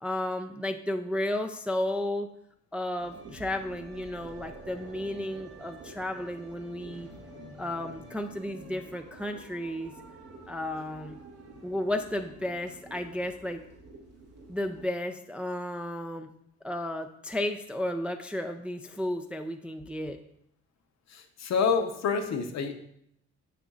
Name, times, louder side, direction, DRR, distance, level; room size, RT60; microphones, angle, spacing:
voice 1, 0.0-2.3 2.7-7.1 7.6-9.9 10.5-11.2 11.6-13.7 14.5-16.3 16.6-20.2, left 1 dB, 5° right, 5 dB, 0.3 m, -33 dB
sound 1, 3.0-14.9, right 2 dB, 55° right, 1.1 m, -48 dB
voice 2, 21.1-22.7, left 5 dB, 60° left, 6 dB, 0.8 m, -28 dB
6.8 x 6.2 x 2.4 m, 0.71 s
cardioid pair, 90°, 30 cm